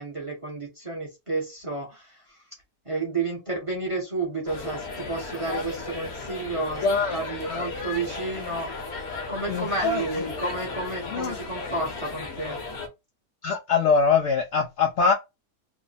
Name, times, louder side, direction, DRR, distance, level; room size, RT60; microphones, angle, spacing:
voice 1, 0.0-2.4 2.8-6.8 7.1-8.7 9.3-12.6, right 3 dB, 30° right, 0.7 m, -31 dB
sound 1, 4.5-12.9, left 3 dB, 50° left, 0.9 m, -35 dB
voice 2, 6.8-7.7 9.5-10.0 11.1-11.4 13.4-15.1, left 5 dB, 90° left, 0.6 m, -23 dB
3.2 x 2.1 x 3.9 m
omnidirectional pair, 1.8 m